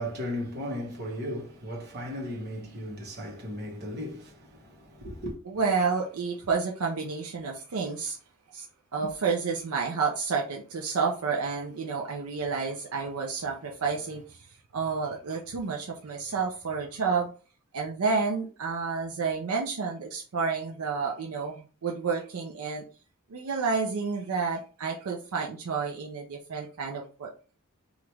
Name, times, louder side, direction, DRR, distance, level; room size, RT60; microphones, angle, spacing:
voice 1, 0.0-5.3, equal, 50° right, 1.0 m, -36 dB
voice 2, 5.5-8.2 8.5-8.7 8.9-14.4 14.7-17.3 17.7-22.8 23.3-27.3, right 5 dB, 80° right, 0.5 m, -30 dB
2.9 x 2.4 x 3.2 m
head